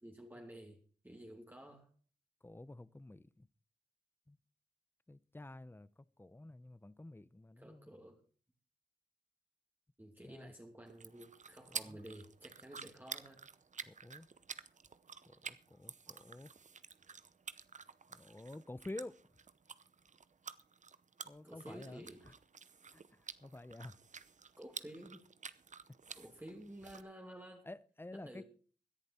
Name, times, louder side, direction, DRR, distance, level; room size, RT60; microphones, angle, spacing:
voice 1, 0.0-1.9 7.6-8.2 10.0-13.4 21.4-22.2 24.6-25.2 26.1-27.7 28.1-28.4, right 1 dB, 10° right, 0 dB, 2.6 m, -52 dB
voice 2, 2.4-3.5 4.3-4.4 5.1-7.9 10.2-10.5 11.7-12.0 13.8-14.3 15.3-16.5 18.1-19.1 21.2-22.3 22.9-24.0 27.6-28.4, left 2 dB, 15° left, 17 dB, 0.7 m, -50 dB
sound 1, 10.9-27.0, right 5 dB, 50° right, 0.8 m, -51 dB
17.0 x 10.5 x 4.3 m, 0.41 s
cardioid pair, 60°, 16 cm